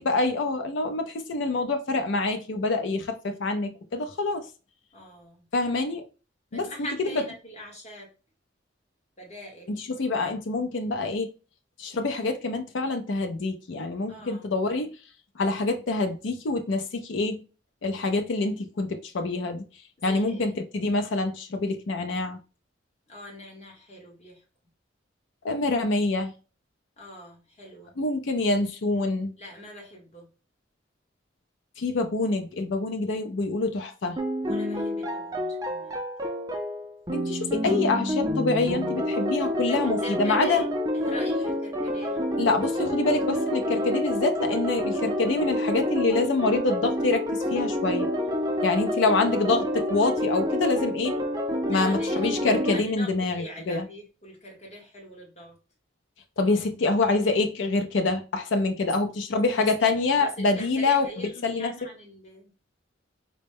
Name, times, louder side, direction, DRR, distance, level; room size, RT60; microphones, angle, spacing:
voice 1, 0.0-4.5 5.5-6.0 6.5-7.2 9.7-11.3 11.8-14.9 15.4-17.4 17.8-19.6 20.0-22.4 25.4-26.3 28.0-29.3 31.8-34.2 37.1-40.7 42.4-48.1 48.6-51.2 51.7-53.8 56.4-61.7, left 3 dB, 80° left, 0.5 m, -26 dB
voice 2, 4.9-5.4 6.5-8.1 9.2-9.7 14.1-14.4 20.0-20.6 23.1-24.4 27.0-27.9 29.4-30.3 34.4-36.0 39.7-40.7 40.9-42.2 49.0-49.2 51.6-52.3 52.7-55.6 59.6-59.7 60.2-62.5, equal, 35° left, 1.3 m, -43 dB
sound 1, 34.2-52.8, left 1 dB, 20° right, 0.5 m, -28 dB
4.0 x 2.1 x 3.3 m
head